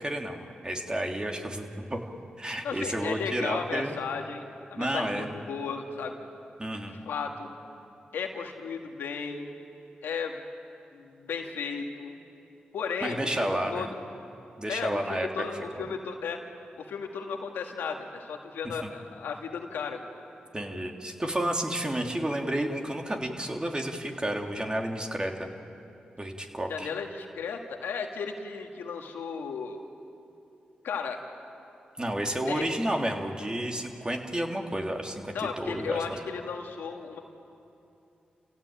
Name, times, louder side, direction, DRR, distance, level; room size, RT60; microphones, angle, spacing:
voice 1, 0.0-2.0 2.4-4.0 4.8-5.4 6.6-6.9 13.0-13.9 14.6-15.3 15.5-15.8 18.8-18.9 20.5-25.5 26.2-26.9 32.0-36.0, right 1 dB, 25° right, 2 dB, 3.2 m, -31 dB
voice 2, 2.6-4.4 4.7-6.2 6.9-7.5 8.1-9.5 10.0-10.4 10.9-12.1 12.7-13.9 14.7-16.4 16.8-20.0 26.7-29.8 30.8-31.2 32.5-32.7 35.3-37.2, left 5 dB, 90° left, 3 dB, 1.8 m, -35 dB
29.0 x 16.5 x 9.0 m, 2.7 s
supercardioid pair, 40°, 3 cm